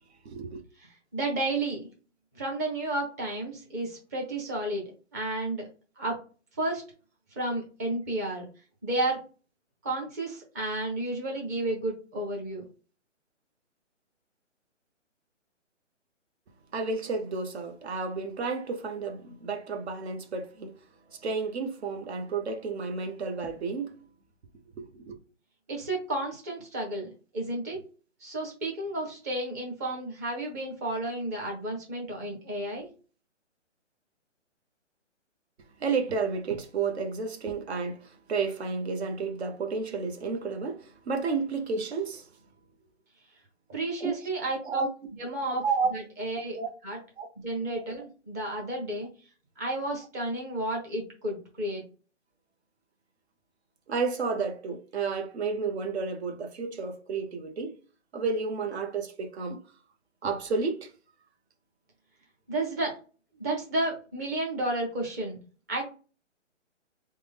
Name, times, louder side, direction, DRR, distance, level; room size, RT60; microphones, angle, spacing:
voice 1, 0.2-0.6 16.7-20.7 21.1-23.9 24.8-25.2 35.8-42.3 44.0-44.1 44.7-44.9 45.6-45.9 46.5-46.7 47.2-47.3 53.9-57.7 58.1-59.6 60.2-60.9, right 4 dB, 60° right, 0.9 m, -31 dB
voice 2, 0.8-1.9 2.3-5.6 6.0-6.2 6.6-6.8 7.4-8.5 8.8-9.2 9.8-12.6 25.7-27.8 28.2-32.9 43.7-44.8 45.2-45.6 45.9-46.6 46.8-47.0 47.4-49.1 49.6-51.8 62.5-62.9 63.4-65.4 65.7-65.8, right 2 dB, 15° right, 0.6 m, -32 dB
3.4 x 2.2 x 3.4 m
hypercardioid pair, 155°, 37 cm